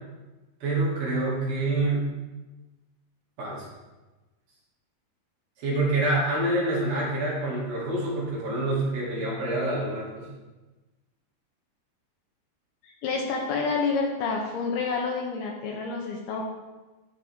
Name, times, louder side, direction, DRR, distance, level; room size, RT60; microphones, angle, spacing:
voice 1, 0.6-2.1 3.4-3.7 5.6-10.3, right 2 dB, 60° right, -6 dB, 3.9 m, -27 dB
voice 2, 12.8-16.4, left 4 dB, 75° left, 0 dB, 2.7 m, -28 dB
12.5 x 5.5 x 3.5 m, 1.2 s
omnidirectional pair, 5.1 m